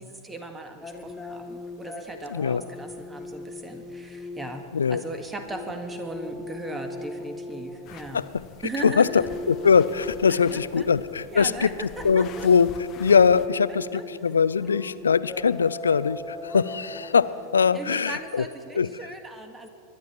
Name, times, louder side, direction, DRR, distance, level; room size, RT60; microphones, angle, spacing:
voice 1, 0.0-4.6 4.9-8.3 8.6-9.3 10.5-10.8 11.3-12.5 13.7-14.0 17.7-19.7, right 2 dB, 15° right, 6 dB, 1.7 m, -38 dB
sound 1, 0.8-18.3, left 2 dB, 5° left, 1.5 m, -40 dB
voice 2, 2.3-2.6 4.7-5.0 8.1-8.4 8.8-9.2 9.5-18.4 18.8-18.9, left 6 dB, 80° left, 17 dB, 0.4 m, -22 dB
sound 2, 7.8-13.5, left 10 dB, 40° left, 0.6 m, -46 dB
22.0 x 11.0 x 4.5 m, 2.3 s
figure-of-eight pair, 90°, 0 cm